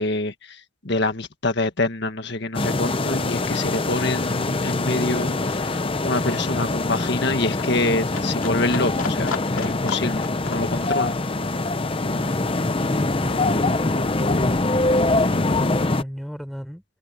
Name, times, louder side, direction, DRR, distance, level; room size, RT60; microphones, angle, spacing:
voice 1, 0.0-11.2, left 2 dB, 55° left, 1.8 m, -26 dB
Livestock farm animals working animals, 2.3-2.4 2.7-13.6 14.0-15.0 15.3-15.4, left 5 dB, 85° left, 2.5 m, -38 dB
sound 1, 2.5-16.0, left 2 dB, 25° left, 0.7 m, -23 dB
sound 2, 2.9-6.6 11.0-15.5, equal, 45° right, 4.1 m, -45 dB
voice 2, 12.1-13.9 14.3-16.8, equal, ahead, 4.3 m, -37 dB
head